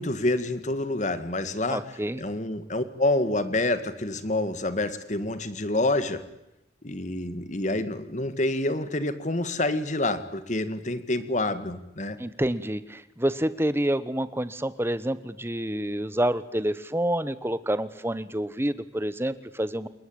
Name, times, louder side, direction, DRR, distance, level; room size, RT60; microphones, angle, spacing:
voice 1, 0.0-1.8 2.1-6.2 6.8-12.2, left 2 dB, 45° left, 12 dB, 2.0 m, -27 dB
voice 2, 1.7-2.2 12.2-19.9, right 1 dB, 15° right, 15 dB, 1.1 m, -28 dB
29.0 x 20.5 x 8.8 m, 0.89 s
head